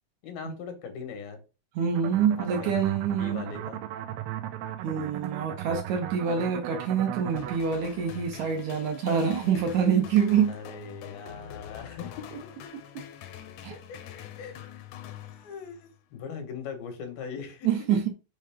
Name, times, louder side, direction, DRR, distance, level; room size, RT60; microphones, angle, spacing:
voice 1, 0.2-1.4 2.4-2.7 3.1-3.8 10.5-12.3 13.7-14.6 15.3-17.7, left 6 dB, 85° left, 3.2 m, -40 dB
voice 2, 1.8-3.4 4.8-10.6 12.7-13.0 13.6-13.8 17.6-18.1, right 7 dB, 70° right, 2.1 m, -26 dB
sound 1, 2.0-7.6, right 13 dB, 85° right, 2.3 m, -36 dB
sound 2, 7.4-15.9, left 10 dB, 70° left, 1.9 m, -44 dB
6.7 x 4.9 x 3.5 m
omnidirectional pair, 4.1 m